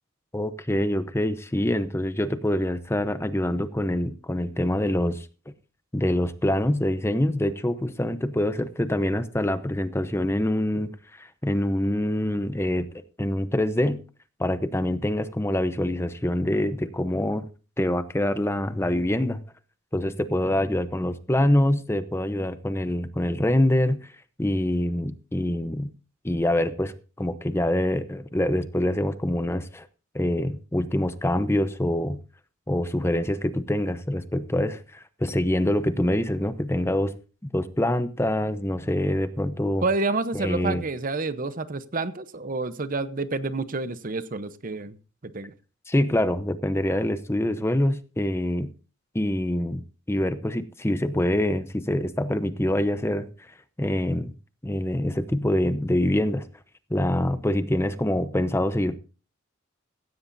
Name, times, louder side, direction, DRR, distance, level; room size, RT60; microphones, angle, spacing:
voice 1, 0.3-5.3 5.9-12.9 13.2-14.0 14.4-17.5 17.8-19.4 19.9-24.1 24.4-25.9 26.2-29.9 30.1-32.2 32.7-37.1 37.5-39.8 40.3-40.8 45.9-48.7 49.1-49.8 50.1-53.3 53.8-54.3 54.6-56.5 56.9-59.0, left 1 dB, 15° left, 0.8 m, -25 dB
voice 2, 39.8-45.0 45.2-45.5, right 3 dB, 45° right, 0.9 m, -29 dB
16.0 x 15.5 x 2.7 m
head